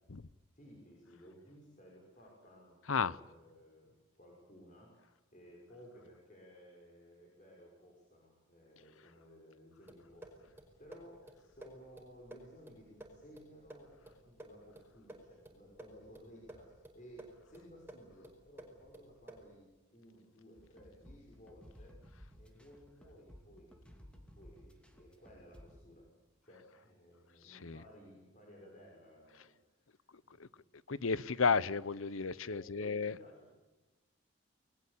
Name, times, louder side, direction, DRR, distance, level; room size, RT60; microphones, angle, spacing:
voice 1, 0.5-22.0 22.4-26.1 26.4-30.6 31.5-31.6 32.5-33.5, equal, 35° left, 6.2 m, -58 dB
sound 1, 9.9-19.6, right 1 dB, 10° right, 5.1 m, -55 dB
sound 2, 20.6-25.8, equal, 5° left, 2.8 m, -57 dB
voice 2, 27.4-27.8 30.1-30.5 30.9-33.2, left 5 dB, 75° left, 0.8 m, -33 dB
29.0 x 20.5 x 8.6 m
head